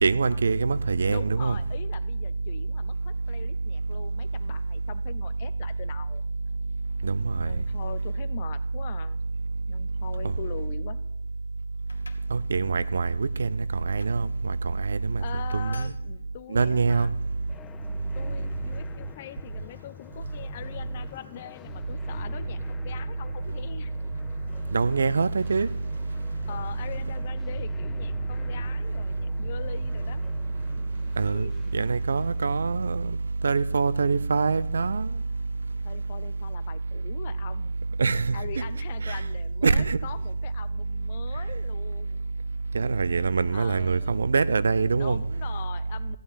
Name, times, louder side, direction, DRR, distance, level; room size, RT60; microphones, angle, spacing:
voice 1, 0.0-1.6 7.0-7.5 10.2-10.3 12.3-15.2 15.5-15.9 16.5-17.1 24.7-25.7 31.2-33.2 33.4-35.1 38.0-38.4 39.0-39.2 39.6-40.0 42.7-45.2, right 4 dB, 65° right, 0.6 m, -24 dB
voice 2, 1.1-6.2 7.4-9.2 9.7-11.0 15.2-17.1 18.1-23.9 26.5-30.3 31.2-31.5 35.8-37.7 38.3-42.2 43.5-44.2 44.9-46.2, left 10 dB, 35° left, 0.7 m, -42 dB
sound 1, 11.9-12.3 12.8-13.1 13.9-14.2 14.9-15.1 15.5-16.0, left 3 dB, 80° left, 1.5 m, -50 dB
sound 2, 17.1-32.7, left 10 dB, 15° left, 0.3 m, -47 dB
14.5 x 8.9 x 4.2 m
figure-of-eight pair, 145°, 0 cm